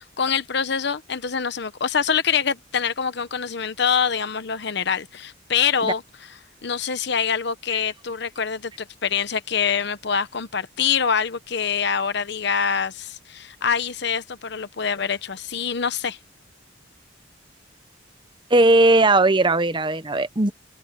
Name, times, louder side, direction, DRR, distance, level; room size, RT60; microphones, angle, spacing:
voice 1, 0.2-6.0 6.6-16.2, left 7 dB, 60° left, 1.0 m, -25 dB
voice 2, 18.5-20.5, right 2 dB, 25° right, 0.9 m, -18 dB
head